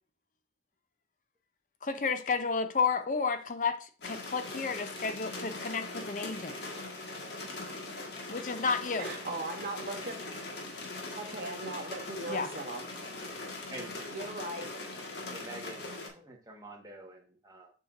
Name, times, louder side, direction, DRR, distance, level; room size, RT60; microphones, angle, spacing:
voice 1, 1.8-6.5 8.3-9.1 12.3-12.5, left 5 dB, 45° left, 0.5 m, -31 dB
sound 1, 4.0-16.1, left 2 dB, 70° left, 1.5 m, -41 dB
voice 2, 9.0-10.2 11.2-12.8 14.1-14.7, right 2 dB, 50° right, 1.4 m, -38 dB
voice 3, 15.3-17.7, right 1 dB, 20° right, 1.4 m, -47 dB
7.0 x 5.5 x 2.5 m
head